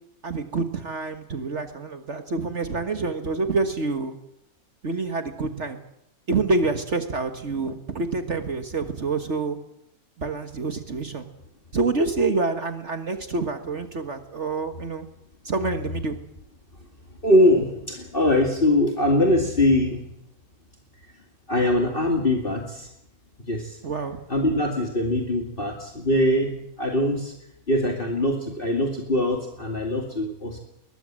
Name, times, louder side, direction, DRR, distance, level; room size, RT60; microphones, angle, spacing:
voice 1, 0.2-4.2 4.8-5.8 6.3-9.6 10.2-11.3 11.7-15.1 15.4-16.2 23.8-24.2, right 3 dB, 50° right, 8 dB, 1.8 m, -27 dB
voice 2, 17.2-20.0 21.5-22.9 23.5-23.8 24.3-27.3 27.7-30.6, left 1 dB, 35° left, 3 dB, 2.6 m, -22 dB
21.5 x 21.0 x 7.6 m, 0.79 s
omnidirectional pair, 1.5 m